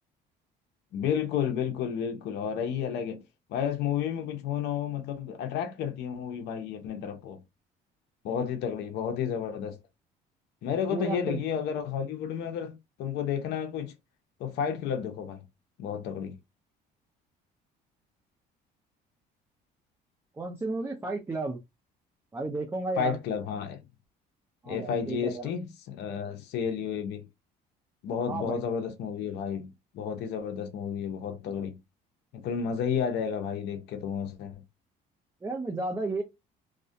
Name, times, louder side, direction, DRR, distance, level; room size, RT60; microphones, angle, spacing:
voice 1, 0.9-3.2 3.5-7.4 8.2-9.8 10.6-13.9 14.4-15.4 15.8-16.4 23.0-23.8 24.7-27.3 28.0-31.8 32.3-34.6, left 8 dB, 70° left, 0.6 m, -31 dB
voice 2, 10.9-11.4 20.4-21.6 22.3-23.2 24.6-25.5 28.3-28.6 35.4-36.2, right 3 dB, 15° right, 0.4 m, -32 dB
2.3 x 2.1 x 2.6 m
cardioid pair, 115°, 18 cm